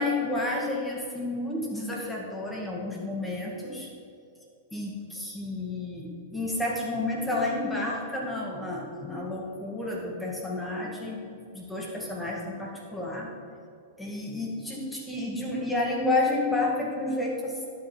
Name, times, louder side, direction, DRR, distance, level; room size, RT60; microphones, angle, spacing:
voice 1, 0.0-3.9 4.7-11.2 11.5-13.3 14.0-17.7, left 2 dB, 5° left, -3 dB, 2.1 m, -30 dB
11.5 x 8.5 x 3.4 m, 2.5 s
hypercardioid pair, 105°, 0 cm